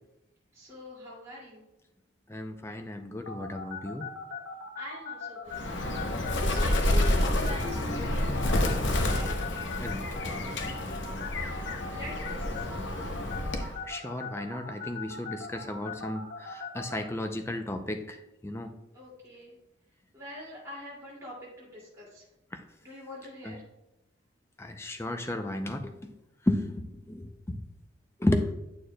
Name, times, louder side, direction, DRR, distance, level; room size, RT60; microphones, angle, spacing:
voice 1, 0.5-1.6 4.8-5.6 6.5-9.3 11.9-13.3 18.9-19.5 20.1-22.2 22.8-23.6, left 1 dB, 15° right, -7 dB, 2.4 m, -43 dB
voice 2, 2.3-4.0 9.8-10.6 13.6-18.2 18.4-18.7 22.5-22.6 23.4-23.5 24.6-25.9 26.4-27.6 28.2-28.5, left 1 dB, 15° left, 6 dB, 0.4 m, -33 dB
sound 1, 3.3-17.0, left 5 dB, 85° left, 1.4 m, -39 dB
Bird, 5.5-13.8, left 1 dB, 65° left, 0.8 m, -29 dB
9.4 x 6.6 x 2.2 m, 0.92 s
head